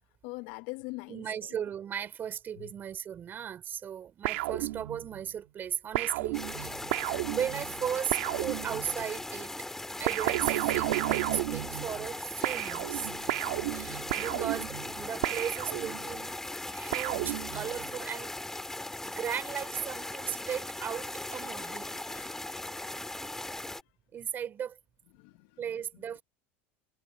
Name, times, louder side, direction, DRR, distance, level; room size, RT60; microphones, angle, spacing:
voice 1, 0.2-1.5 2.6-2.7 14.3-14.5 22.1-22.2 25.1-25.5, left 24 dB, 70° left, 1.3 m, -42 dB
voice 2, 1.1-6.8 7.3-9.5 10.0-10.9 11.3-13.4 13.7-14.7 14.9-16.3 16.7-18.3 19.0-22.4 24.1-24.8 25.6-26.2, right 9 dB, 35° right, 4.2 m, -36 dB
sound 1, 4.2-5.2 5.9-9.1 10.1-12.2 12.4-16.2 16.9-17.9, right 19 dB, 85° right, 1.8 m, -33 dB
sound 2, 6.3-23.8, left 2 dB, 5° left, 2.5 m, -39 dB
supercardioid pair, 125°, 6 cm